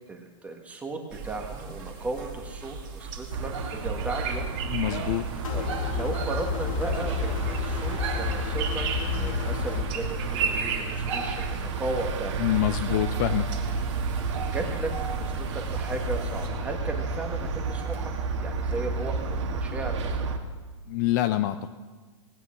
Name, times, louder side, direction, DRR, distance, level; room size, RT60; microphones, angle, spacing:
voice 1, 0.1-3.5 3.8-4.5 5.5-12.3 12.6-13.0 14.3-18.1 18.4-20.3, right 2 dB, 10° right, 3 dB, 1.5 m, -36 dB
sound 1, 1.1-16.5, right 5 dB, 40° right, 2.5 m, -37 dB
sound 2, 3.3-20.4, right 4 dB, 65° right, 1.9 m, -31 dB
voice 2, 4.7-5.3 12.4-13.5 20.9-21.6, left 14 dB, 35° left, 9 dB, 0.5 m, -26 dB
sound 3, 5.4-9.8, left 7 dB, 90° left, 2.7 m, -31 dB
18.5 x 9.2 x 6.3 m, 1.4 s
hypercardioid pair, 160°, 17 cm